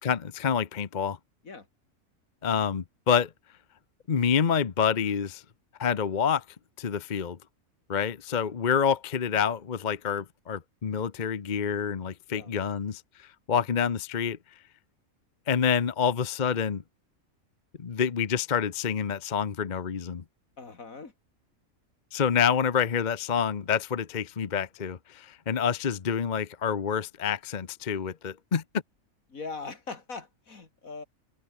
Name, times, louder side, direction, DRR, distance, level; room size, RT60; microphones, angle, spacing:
voice 1, 0.0-1.2 2.4-3.3 4.1-5.4 5.8-6.4 6.8-7.4 7.9-14.4 15.5-16.8 17.8-20.2 22.1-28.6, left 7 dB, 40° left, 0.9 m, -27 dB
voice 2, 20.6-21.1 29.3-31.0, left 4 dB, 75° left, 3.1 m, -41 dB
omnidirectional pair, 1.5 m